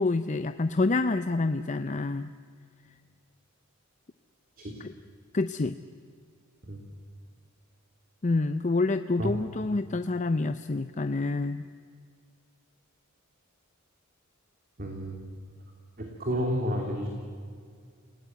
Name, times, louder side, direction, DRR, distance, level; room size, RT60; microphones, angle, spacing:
voice 1, 0.0-2.3 4.8-4.9 5.3-5.8 8.2-11.7, left 3 dB, 35° left, 10 dB, 0.6 m, -27 dB
voice 2, 14.8-15.2 16.0-17.1, equal, 45° right, 1 dB, 3.0 m, -31 dB
29.5 x 18.5 x 9.3 m, 2.2 s
head